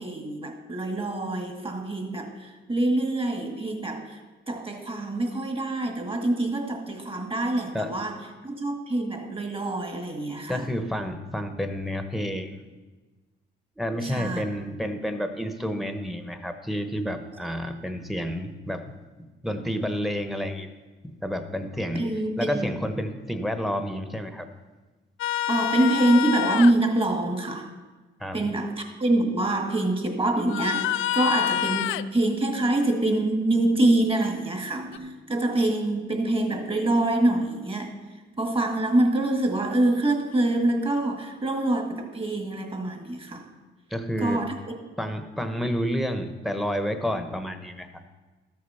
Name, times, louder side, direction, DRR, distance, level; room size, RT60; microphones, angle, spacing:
voice 1, 0.0-4.2 4.5-10.7 14.0-14.4 21.9-22.7 25.5-27.7 28.3-43.5 44.2-44.7, right 1 dB, 25° right, 4 dB, 1.9 m, -25 dB
voice 2, 10.5-12.6 13.8-18.9 19.4-20.7 21.2-22.0 22.4-24.5 28.2-28.4 43.9-44.4 45.0-48.0, equal, ahead, 7 dB, 1.1 m, -30 dB
sound 1, 25.2-26.7 30.5-32.1 34.9-35.0, left 12 dB, 80° left, 0.4 m, -27 dB
13.0 x 6.6 x 5.6 m, 1.3 s
cardioid pair, 90°, 20 cm